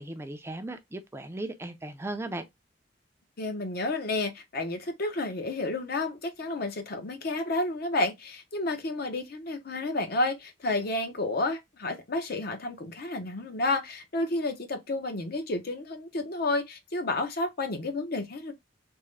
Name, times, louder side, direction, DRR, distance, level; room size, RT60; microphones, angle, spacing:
voice 1, 0.0-2.5, right 2 dB, 15° right, 0.4 m, -37 dB
voice 2, 3.4-18.5, left 2 dB, 55° left, 0.8 m, -31 dB
3.5 x 2.1 x 3.2 m
head